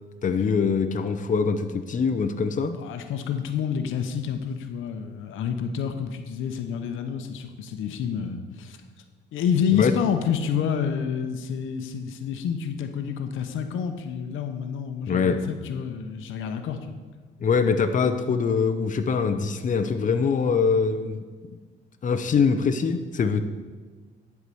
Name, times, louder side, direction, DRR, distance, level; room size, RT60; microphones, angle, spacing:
voice 1, 0.2-2.7 9.7-9.9 15.1-15.4 17.4-21.2 22.0-23.4, left 5 dB, 40° left, 8 dB, 0.8 m, -23 dB
voice 2, 2.7-8.8 9.3-17.1, left 7 dB, 85° left, 7 dB, 0.9 m, -28 dB
11.0 x 4.7 x 7.0 m, 1.4 s
cardioid pair, 90°, 20 cm